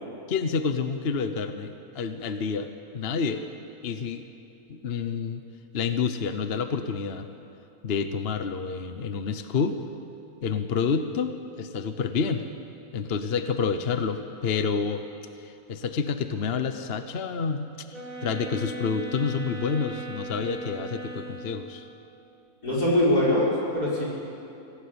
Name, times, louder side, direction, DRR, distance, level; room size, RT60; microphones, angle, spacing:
voice 1, 0.3-3.4 3.8-4.2 4.7-5.4 5.7-7.3 7.8-9.8 10.4-12.4 12.9-15.0 15.4-17.7 18.2-21.9, left 5 dB, 45° left, 8 dB, 1.1 m, -28 dB
sound 1, 17.9-21.8, right 2 dB, 25° right, 5.0 m, -38 dB
voice 2, 22.6-24.0, left 1 dB, 85° left, -5 dB, 6.8 m, -22 dB
25.0 x 16.5 x 8.7 m, 2.8 s
omnidirectional pair, 1.6 m